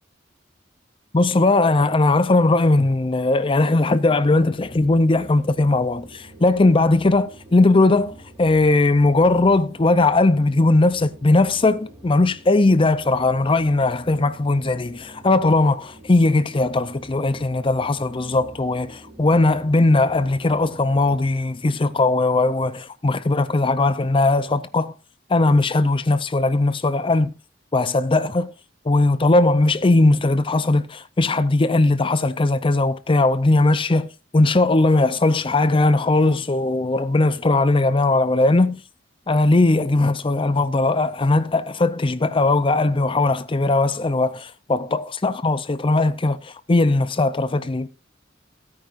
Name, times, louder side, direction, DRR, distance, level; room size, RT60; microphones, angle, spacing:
voice 1, 1.1-24.9 25.3-27.3 27.7-28.5 28.9-34.1 34.3-38.8 39.3-47.9, left 2 dB, 25° left, 0.5 m, -19 dB
sound 1, 4.2-21.2, right 1 dB, 15° right, 3.6 m, -46 dB
17.0 x 9.4 x 2.5 m
head